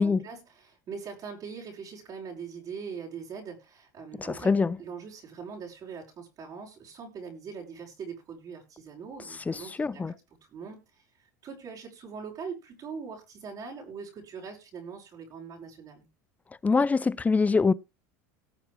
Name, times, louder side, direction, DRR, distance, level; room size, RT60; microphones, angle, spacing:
voice 1, 0.0-4.5 4.8-10.2 10.5-10.8 11.4-16.1, right 6 dB, 45° right, 5.9 m, -42 dB
voice 2, 4.2-4.8 9.5-10.1 16.6-17.7, left 4 dB, 15° left, 0.6 m, -24 dB
18.5 x 6.7 x 3.4 m
hypercardioid pair, 85°, 9 cm